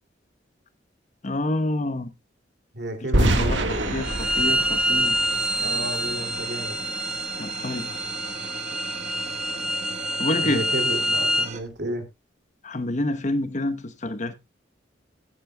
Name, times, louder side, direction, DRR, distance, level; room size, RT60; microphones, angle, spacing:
voice 1, 1.2-2.1 3.2-5.4 7.4-7.9 10.2-10.7 12.6-14.4, left 1 dB, 40° left, 0.9 m, -28 dB
voice 2, 2.7-4.0 5.6-6.8 10.4-12.0, right 1 dB, 65° right, 2.5 m, -32 dB
sound 1, 3.1-6.1, right 1 dB, 80° right, 1.6 m, -25 dB
sound 2, 3.7-11.6, right 4 dB, 40° right, 1.2 m, -38 dB
Bowed string instrument, 4.0-11.5, equal, 5° right, 1.0 m, -26 dB
16.0 x 9.3 x 2.2 m
head